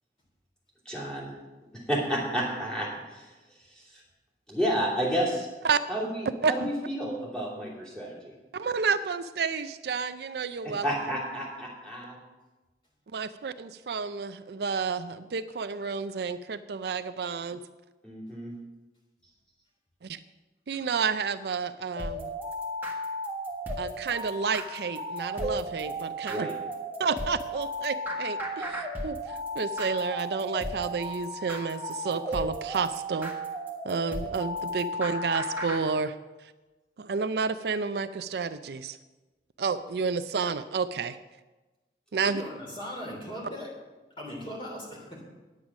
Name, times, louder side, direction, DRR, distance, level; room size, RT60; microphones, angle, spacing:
voice 1, 0.8-1.3 1.7-3.3 3.7-4.0 4.5-5.5 5.9-8.3 10.6-12.2 18.0-18.5 26.3-26.5, equal, 5° left, -5 dB, 2.8 m, -31 dB
voice 2, 8.5-10.8 13.1-17.6 20.0-20.2 20.7-22.3 23.8-26.5 27.0-33.3 33.8-36.1 36.4-36.5 37.0-39.0 39.6-41.2 42.1-42.4, right 5 dB, 65° right, 12 dB, 0.4 m, -30 dB
sound 1, 22.0-35.8, equal, 10° right, 1.5 m, -34 dB
voice 3, 42.2-43.7 44.2-45.2, equal, 30° left, -1 dB, 3.1 m, -39 dB
9.6 x 8.7 x 6.1 m, 1.2 s
head